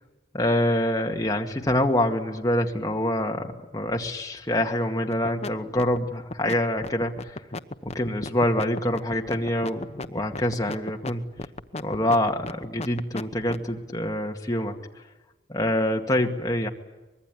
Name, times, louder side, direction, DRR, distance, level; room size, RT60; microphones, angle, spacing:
voice 1, 0.3-7.4 7.8-11.3 11.8-14.8 15.5-16.7, left 1 dB, 20° left, 2 dB, 2.1 m, -26 dB
sound 1, 5.1-5.5 5.8-13.7, left 2 dB, 40° left, 1.0 m, -34 dB
24.5 x 21.5 x 9.8 m, 1.1 s
head